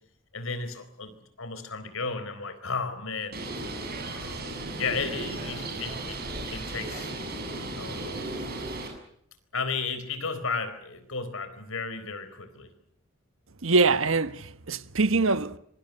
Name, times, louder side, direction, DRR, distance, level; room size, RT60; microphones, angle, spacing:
voice 1, 0.3-3.4 4.0-4.5 4.8-6.2 6.5-7.1 7.8-8.3 9.5-12.7, left 4 dB, 75° left, 4.2 m, -34 dB
Bird, 3.3-8.9, right 2 dB, 45° right, 7.5 m, -35 dB
voice 2, 13.6-15.6, right 3 dB, 70° right, 1.2 m, -23 dB
26.0 x 24.5 x 6.8 m
head